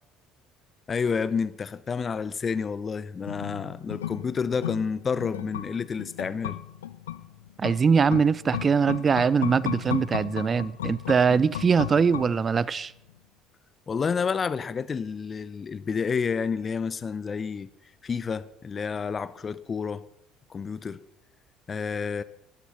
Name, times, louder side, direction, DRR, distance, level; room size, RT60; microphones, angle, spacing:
voice 1, 0.9-6.6 13.9-17.7 18.0-20.0 20.5-21.0 21.7-22.2, left 5 dB, 30° left, 0.7 m, -29 dB
sound 1, 3.3-12.8 13.1-13.2, left 11 dB, 75° left, 0.4 m, -36 dB
voice 2, 7.6-12.9, right 6 dB, 30° right, 0.5 m, -22 dB
12.0 x 11.0 x 5.7 m
figure-of-eight pair, 60°, 0 cm